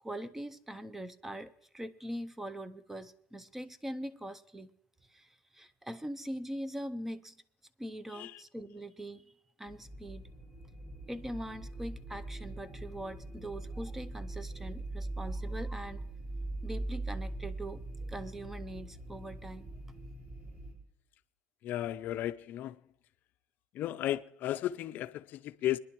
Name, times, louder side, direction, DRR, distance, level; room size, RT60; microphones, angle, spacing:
voice 1, 0.0-4.7 5.1-7.3 7.8-9.2 9.6-10.3 11.1-16.1 16.6-19.7, right 1 dB, 5° right, 0.5 m, -42 dB
sound 1, 9.7-20.7, right 2 dB, 40° right, 3.5 m, -41 dB
voice 2, 21.6-22.8 23.7-25.8, left 13 dB, 45° left, 0.5 m, -34 dB
22.5 x 11.0 x 3.0 m
cardioid pair, 155°, 4 cm